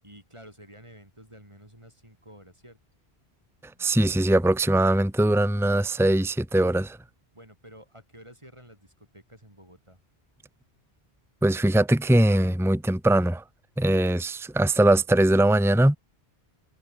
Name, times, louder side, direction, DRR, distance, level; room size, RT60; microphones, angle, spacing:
voice 1, 0.0-2.8 7.3-10.0, equal, 30° right, 8.2 m, -50 dB
voice 2, 3.8-7.0 11.4-13.4 13.8-16.0, right 1 dB, ahead, 1.3 m, -21 dB
omnidirectional pair, 1.1 m